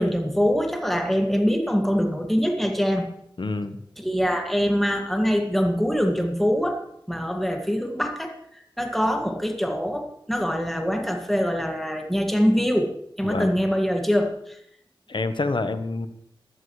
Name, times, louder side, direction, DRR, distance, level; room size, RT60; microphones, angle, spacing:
voice 1, 0.0-3.1 4.0-12.9 13.2-14.6, equal, ahead, 3 dB, 1.9 m, -24 dB
voice 2, 3.4-3.8 13.2-13.5 15.1-16.1, left 3 dB, 60° left, 10 dB, 1.0 m, -27 dB
17.0 x 11.5 x 3.2 m, 0.72 s
cardioid pair, 40°, 9 cm